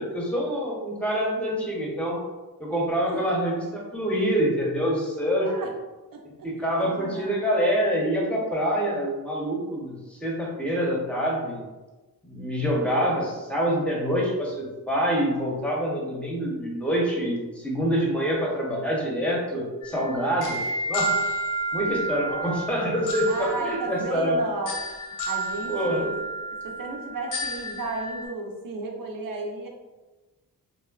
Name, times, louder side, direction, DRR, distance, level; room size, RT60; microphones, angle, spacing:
voice 1, 0.0-2.2 2.6-5.5 6.4-11.7 12.2-20.6 20.9-21.2 21.7-24.4 25.7-26.1, equal, 5° left, -3 dB, 0.8 m, -26 dB
voice 2, 3.0-3.3 5.4-5.7 6.1-6.5 6.7-7.4 8.3-8.4 12.7-13.3 22.2-22.9 23.3-24.8 25.3-26.2 26.6-29.7, right 3 dB, 65° right, 1 dB, 0.7 m, -34 dB
sound 1, 19.8-28.3, right 2 dB, 60° left, 0.7 m, -31 dB
3.6 x 2.0 x 2.4 m, 1.2 s
cardioid pair, 75°, 36 cm